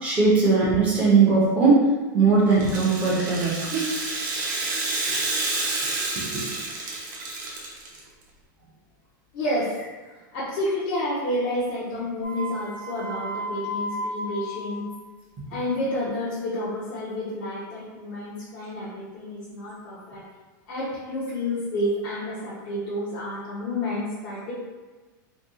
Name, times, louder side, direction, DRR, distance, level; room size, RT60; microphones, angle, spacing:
voice 1, 0.0-1.8 2.1-3.9 6.3-6.4, right 4 dB, 15° right, -6 dB, 0.6 m, -19 dB
Rattle (instrument), 2.5-8.0, right 2 dB, 65° right, 0.8 m, -29 dB
voice 2, 9.3-9.8 10.3-14.8 15.5-20.2 20.7-24.5, left 1 dB, 35° left, -10 dB, 0.6 m, -30 dB
sound 1, 12.2-14.8, equal, 75° left, 1.0 m, -33 dB
2.7 x 2.2 x 3.5 m, 1.3 s
supercardioid pair, 180°, 11 cm